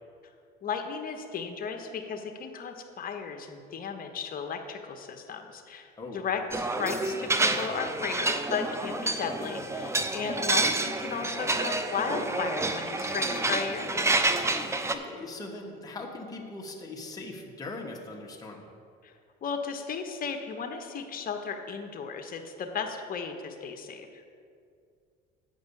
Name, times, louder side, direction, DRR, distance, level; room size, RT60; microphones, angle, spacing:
voice 1, 0.6-14.3 19.0-19.1 19.4-24.2, left 6 dB, 40° left, 5 dB, 1.1 m, -35 dB
voice 2, 6.0-6.3 10.2-10.4 14.9-18.7, left 2 dB, 15° left, -1 dB, 1.4 m, -40 dB
sound 1, 6.5-14.9, right 2 dB, 15° right, 0.6 m, -29 dB
8.2 x 5.2 x 7.0 m, 2.3 s
supercardioid pair, 90°, 21 cm